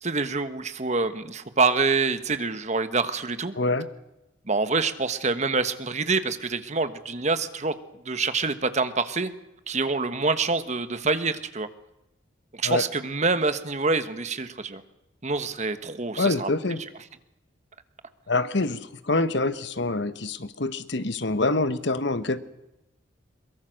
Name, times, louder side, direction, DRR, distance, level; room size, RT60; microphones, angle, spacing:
voice 1, 0.0-3.5 4.5-7.8 8.0-9.3 9.7-11.7 12.6-14.8 15.2-16.5, right 4 dB, 35° right, 11 dB, 1.3 m, -26 dB
voice 2, 3.6-3.9 12.6-12.8 16.2-16.8 18.3-22.4, left 2 dB, 60° left, 12 dB, 1.2 m, -26 dB
23.0 x 22.5 x 6.5 m, 0.93 s
head